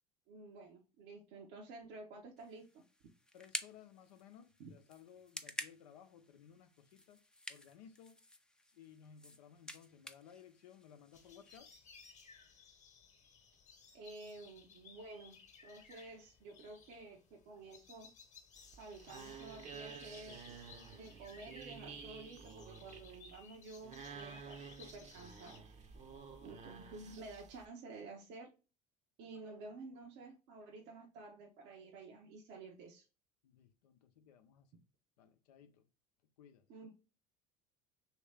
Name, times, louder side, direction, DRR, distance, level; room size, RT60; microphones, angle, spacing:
voice 1, 0.3-2.8 4.6-4.7 13.9-18.1 18.8-20.4 20.9-25.7 26.4-28.5 29.2-33.1 36.7-36.9, right 3 dB, 65° right, 0.9 m, -52 dB
sound 1, 2.4-11.6, left 1 dB, 5° left, 0.5 m, -50 dB
voice 2, 3.3-7.2 7.5-8.2 8.7-11.7 26.0-26.5 33.4-34.8 35.2-35.9 36.4-36.7, left 8 dB, 80° left, 0.6 m, -59 dB
sound 2, 11.1-25.6, left 5 dB, 35° left, 1.0 m, -60 dB
sound 3, 18.6-27.7, right 6 dB, 35° right, 0.7 m, -52 dB
3.1 x 2.8 x 3.2 m
hypercardioid pair, 75°, 20 cm